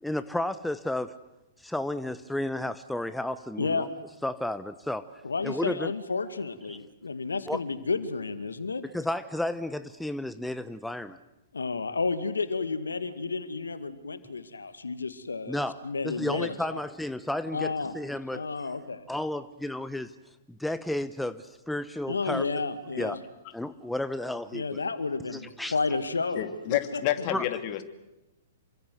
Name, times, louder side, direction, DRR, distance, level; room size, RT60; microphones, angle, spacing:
voice 1, 0.0-1.1 1.6-3.9 4.2-5.1 5.4-5.9 6.7-6.8 7.5-7.6 8.9-11.2 15.5-18.5 19.1-20.1 20.5-22.5 23.0-23.2 23.5-24.8 25.3-25.7 27.3-27.4, left 1 dB, 5° left, 1.0 m, -32 dB
voice 2, 3.6-3.9 5.2-8.8 11.5-16.8 17.5-17.9 18.3-19.0 22.1-23.2 24.5-27.0, left 4 dB, 80° left, 2.2 m, -31 dB
voice 3, 26.3-27.8, left 13 dB, 40° left, 2.6 m, -29 dB
28.0 x 24.5 x 8.0 m
figure-of-eight pair, 110°, 0 cm